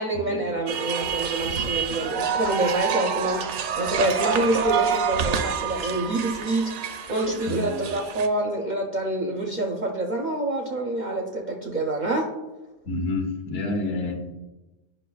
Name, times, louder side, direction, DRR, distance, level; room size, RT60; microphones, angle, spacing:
voice 1, 0.0-12.3, right 2 dB, 50° right, 1 dB, 0.6 m, -27 dB
sound 1, 0.7-8.3, right 6 dB, 90° right, 1.0 m, -27 dB
voice 2, 7.5-7.9 12.8-14.1, left 2 dB, 65° left, 2 dB, 1.3 m, -28 dB
10.0 x 5.5 x 2.3 m, 1.1 s
omnidirectional pair, 1.3 m